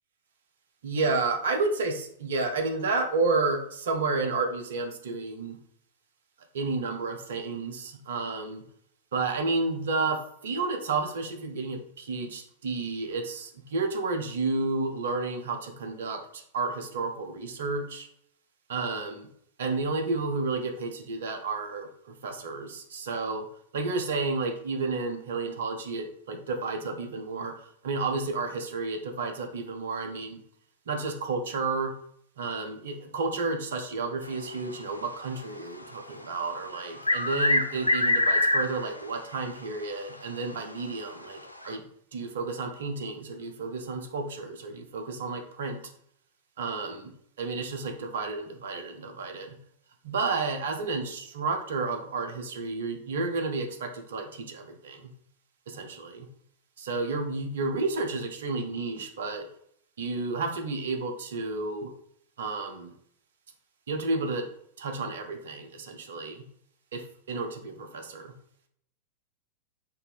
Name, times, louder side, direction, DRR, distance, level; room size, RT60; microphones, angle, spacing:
voice 1, 0.8-5.6 6.5-8.6 9.1-18.1 18.7-19.3 19.6-23.5 23.7-27.5 27.8-30.4 30.9-31.9 32.4-41.8 42.1-45.8 46.6-47.1 47.4-49.6 50.0-55.1 55.7-56.3 56.8-59.5 60.0-61.9 62.4-62.9 63.9-64.5 64.8-66.4 66.9-68.3, right 3 dB, 60° right, 4 dB, 0.7 m, -31 dB
sound 1, 36.7-39.0 39.3-39.4 40.3-40.4 41.6-41.7, left 2 dB, 85° left, 0.3 m, -24 dB
4.5 x 2.7 x 3.3 m, 0.67 s
figure-of-eight pair, 90°, 0 cm